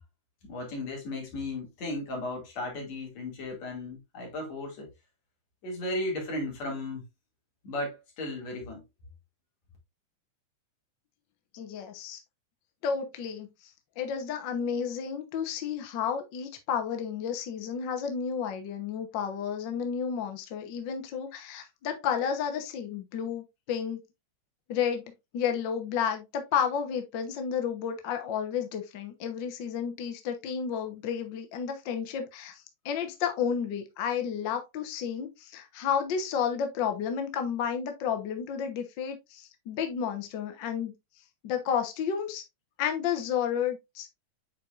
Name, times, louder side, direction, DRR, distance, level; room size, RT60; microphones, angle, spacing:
voice 1, 0.4-4.9 5.6-7.1 7.6-8.8, left 2 dB, 55° left, 3.6 m, -35 dB
voice 2, 11.5-12.2 12.8-13.5 14.0-24.0 24.7-25.0 25.3-40.9 41.4-42.4 42.8-44.1, left 7 dB, 80° left, 1.0 m, -31 dB
8.3 x 4.7 x 2.5 m
omnidirectional pair, 3.7 m